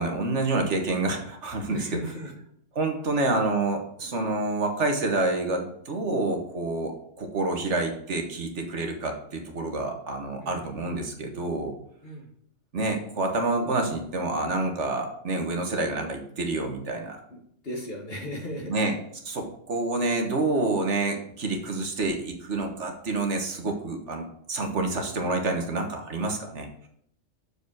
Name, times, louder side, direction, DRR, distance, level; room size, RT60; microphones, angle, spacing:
voice 1, 0.0-2.0 2.7-11.7 12.7-17.2 18.6-18.9 19.2-26.7, right 2 dB, 70° right, 3 dB, 1.7 m, -28 dB
voice 2, 1.7-2.3 10.4-10.7 12.0-12.3 17.3-17.4 17.6-18.7, left 1 dB, 50° left, 0 dB, 1.9 m, -36 dB
6.9 x 5.0 x 6.4 m, 0.68 s
omnidirectional pair, 1.3 m